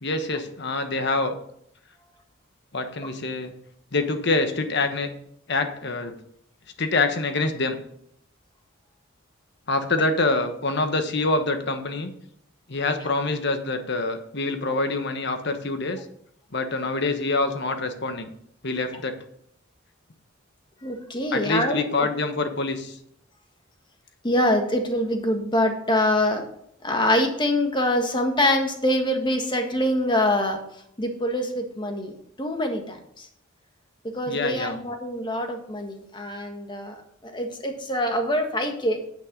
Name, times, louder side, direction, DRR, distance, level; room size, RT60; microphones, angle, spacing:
voice 1, 0.0-1.3 2.7-3.5 3.9-5.1 5.5-6.1 6.8-7.8 9.7-12.1 12.7-16.0 16.5-18.3 18.6-19.1 21.3-23.0 34.3-34.8, left 3 dB, 60° left, 7 dB, 1.3 m, -25 dB
voice 2, 20.8-22.1 24.2-26.4 26.8-30.6 31.0-32.1 32.4-33.3 34.1-36.9 37.2-39.0, left 1 dB, 25° left, 4 dB, 1.6 m, -24 dB
9.7 x 8.9 x 3.9 m, 0.70 s
head